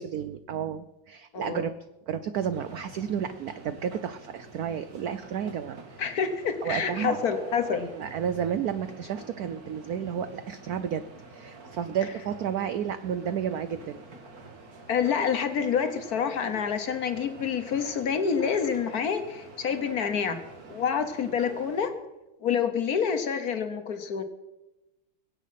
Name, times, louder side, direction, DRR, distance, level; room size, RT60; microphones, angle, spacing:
voice 1, 0.0-1.8 2.1-5.8 6.6-7.2 7.7-11.0 11.3-14.0, right 8 dB, 85° right, 12 dB, 0.8 m, -31 dB
voice 2, 1.3-1.7 6.0-7.8 14.9-20.4 20.7-21.9 22.4-24.2, left 7 dB, 55° left, 9 dB, 1.3 m, -27 dB
sound 1, 2.5-21.9, right 3 dB, 45° right, 2.2 m, -47 dB
22.0 x 8.3 x 5.8 m, 0.99 s
omnidirectional pair, 2.3 m